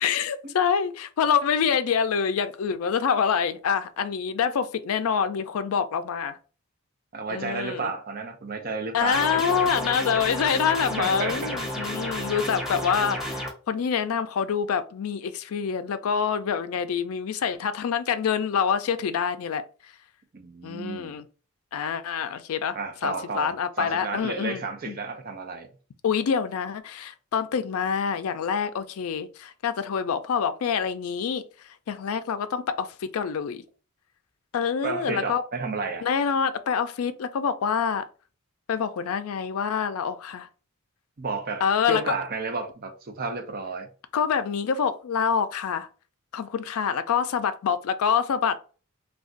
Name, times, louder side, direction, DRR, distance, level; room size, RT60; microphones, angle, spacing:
voice 1, 0.0-6.4 7.3-7.9 8.9-19.6 20.6-21.3 21.7-22.8 23.0-25.0 26.0-31.4 31.9-33.6 34.5-35.4 36.0-38.1 38.7-40.5 41.6-42.1 44.1-45.9 46.3-48.6, left 7 dB, 75° left, 0.4 m, -26 dB
voice 2, 7.1-9.4 11.0-11.9 20.3-21.2 22.7-25.7 34.8-36.1 41.2-43.9, right 4 dB, 45° right, 0.6 m, -32 dB
sound 1, 9.1-13.5, equal, ahead, 0.7 m, -31 dB
2.5 x 2.2 x 3.7 m
head